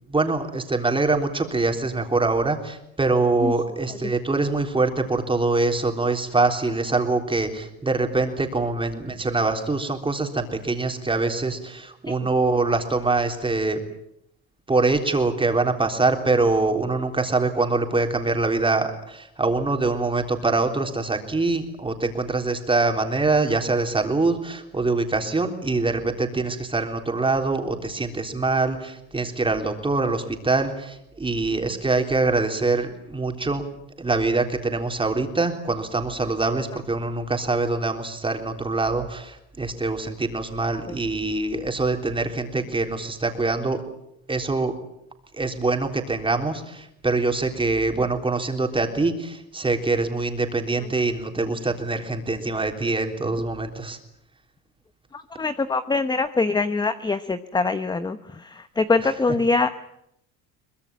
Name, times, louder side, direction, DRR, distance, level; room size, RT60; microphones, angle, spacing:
voice 1, 0.1-13.8 14.7-33.6 34.0-43.8 44.3-44.7 45.3-54.0, right 3 dB, 15° right, 4 dB, 3.7 m, -24 dB
voice 2, 55.1-59.7, left 3 dB, 10° left, 11 dB, 0.9 m, -24 dB
23.5 x 21.0 x 9.0 m, 0.79 s
cardioid pair, 115°, 36 cm